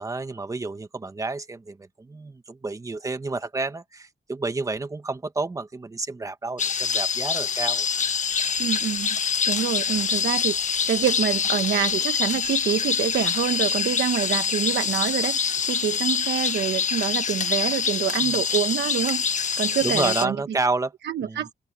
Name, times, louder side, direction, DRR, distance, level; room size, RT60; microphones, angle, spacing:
voice 1, 0.0-7.9 18.2-18.3 19.8-20.9 21.2-21.5, right 3 dB, 20° right, 1.3 m, -30 dB
sound 1, 6.6-20.3, left 6 dB, 45° left, 1.5 m, -25 dB
voice 2, 8.6-9.2 9.5-10.6 10.9-19.2 19.6-20.4 21.0-21.5, right 9 dB, 75° right, 1.1 m, -26 dB
wide cardioid pair, 165°, 18 cm